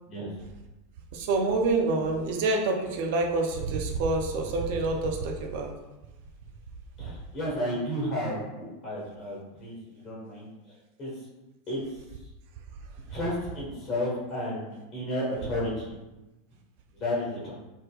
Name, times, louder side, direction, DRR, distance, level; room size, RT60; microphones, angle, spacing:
voice 1, 1.1-5.7, right 3 dB, 55° right, 2 dB, 0.5 m, -27 dB
voice 2, 7.0-9.7 10.0-10.5 11.0-11.1 11.7-11.8 13.1-15.9 17.0-17.5, left 1 dB, 35° left, -5 dB, 1.2 m, -32 dB
3.4 x 2.8 x 2.2 m, 1.0 s
figure-of-eight pair, 85°, 0 cm